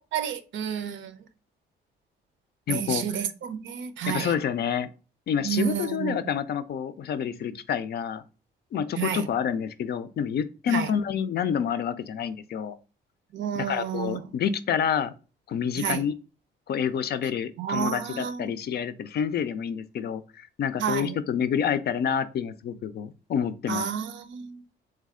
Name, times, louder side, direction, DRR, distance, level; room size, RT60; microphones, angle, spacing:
voice 1, 0.1-1.1 2.7-4.3 5.4-6.2 9.0-9.3 10.7-10.9 13.3-14.2 15.8-16.0 17.6-18.5 20.8-21.2 23.7-24.7, right 8 dB, 75° right, 0.6 m, -30 dB
voice 2, 2.7-3.2 4.1-4.9 5.3-8.2 8.7-12.8 13.5-15.1 15.5-16.1 16.7-23.9, left 8 dB, 55° left, 0.4 m, -28 dB
3.4 x 3.2 x 3.6 m
cardioid pair, 90°, 20 cm